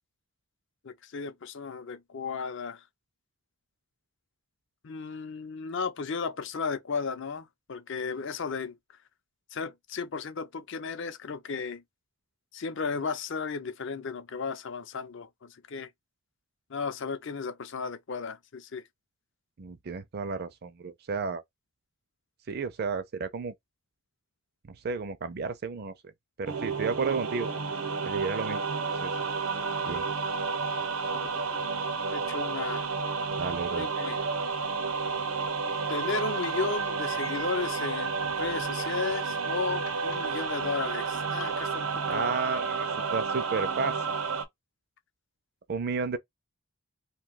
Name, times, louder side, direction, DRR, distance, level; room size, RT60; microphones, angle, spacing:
voice 1, 0.8-2.8 4.8-8.8 9.5-11.8 12.5-15.9 16.7-18.8 32.1-32.9 33.8-34.3 35.9-42.3, left 5 dB, 60° left, 0.5 m, -34 dB
voice 2, 19.6-21.4 22.5-23.5 24.7-25.9 26.4-27.5 28.0-28.7 29.0-29.1 29.8-30.1 33.4-33.9 42.1-44.1 45.7-46.2, right 5 dB, 45° right, 0.4 m, -32 dB
sound 1, 26.5-44.4, right 4 dB, 80° right, 0.8 m, -31 dB
sound 2, 34.7-42.0, left 5 dB, 80° left, 0.9 m, -50 dB
2.6 x 2.2 x 3.8 m
head